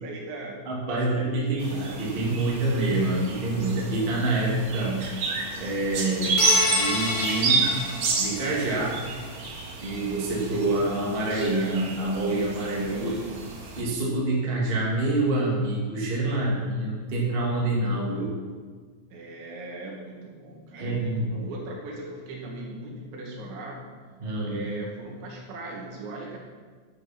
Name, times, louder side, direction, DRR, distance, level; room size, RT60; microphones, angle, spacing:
voice 1, 0.0-0.6 0.9-2.3 12.9-13.4 19.1-23.9 24.5-26.4, right 2 dB, 85° right, -3 dB, 4.5 m, -39 dB
voice 2, 0.7-5.0 5.6-6.4 6.7-7.7 8.2-9.0 9.8-13.1 13.8-18.3 20.7-21.5 24.2-24.6, right 2 dB, 20° right, -4 dB, 1.6 m, -26 dB
sound 1, 1.6-13.8, right 3 dB, 55° right, 2.3 m, -30 dB
sound 2, 6.4-8.9, left 3 dB, 75° left, 4.0 m, -29 dB
10.5 x 8.7 x 5.9 m, 1.5 s
omnidirectional pair, 5.1 m